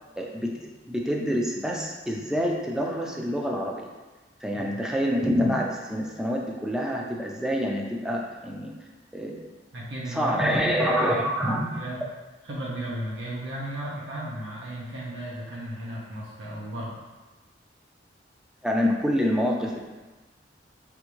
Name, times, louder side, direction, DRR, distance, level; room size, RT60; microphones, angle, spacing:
voice 1, 0.2-3.9 4.4-8.8 9.1-9.5 10.1-11.8 18.6-19.8, equal, 5° right, -1 dB, 0.3 m, -26 dB
voice 2, 9.7-10.5 10.8-10.9 11.5-12.0 12.4-17.0, right 1 dB, 90° right, -5 dB, 0.7 m, -35 dB
3.5 x 2.5 x 3.0 m, 1.2 s
head